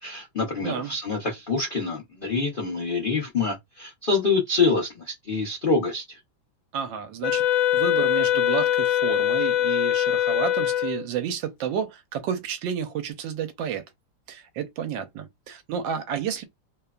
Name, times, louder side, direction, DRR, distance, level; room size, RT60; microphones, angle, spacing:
voice 1, 0.0-6.2, left 4 dB, 60° left, 0.5 m, -26 dB
voice 2, 0.6-0.9 6.7-7.4 7.7-13.8 14.3-16.4, right 8 dB, 80° right, 1.3 m, -31 dB
Wind instrument woodwind instrument, 7.2-11.1, left 11 dB, 80° left, 1.3 m, -22 dB
3.2 x 2.1 x 2.3 m
omnidirectional pair, 2.1 m